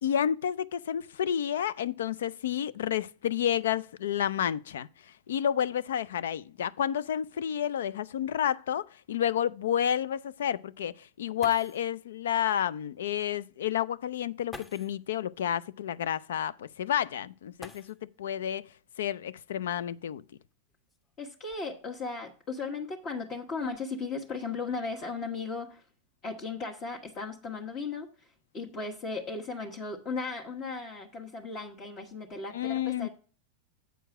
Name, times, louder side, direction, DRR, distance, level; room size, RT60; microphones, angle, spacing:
voice 1, 0.0-4.9 5.3-17.8 18.2-18.6 19.0-20.2 32.5-33.1, left 9 dB, 80° left, 0.4 m, -30 dB
sound 1, 11.4-12.0 13.2-13.3 14.5-15.1 17.5-18.3 19.7-19.8 20.5-22.0 22.7-23.0 23.4-23.8, left 3 dB, 20° left, 1.1 m, -50 dB
voice 2, 21.2-25.8 26.2-28.1 28.5-33.1, left 4 dB, 40° left, 1.4 m, -36 dB
8.0 x 4.6 x 6.0 m
hypercardioid pair, 105°, 0 cm